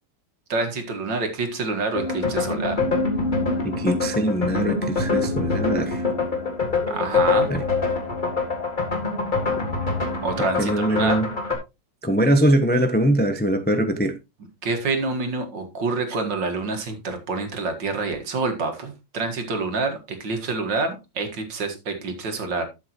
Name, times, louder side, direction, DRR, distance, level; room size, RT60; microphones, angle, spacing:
voice 1, 0.5-2.8 6.9-7.5 10.2-11.2 14.6-22.7, right 3 dB, 70° right, 2.4 m, -27 dB
sound 1, 1.9-11.5, left 3 dB, 25° left, 2.0 m, -25 dB
voice 2, 3.6-6.0 7.5-7.6 10.6-11.3 12.0-14.1, right 1 dB, 10° left, 0.5 m, -22 dB
12.0 x 7.6 x 3.0 m
omnidirectional pair, 2.0 m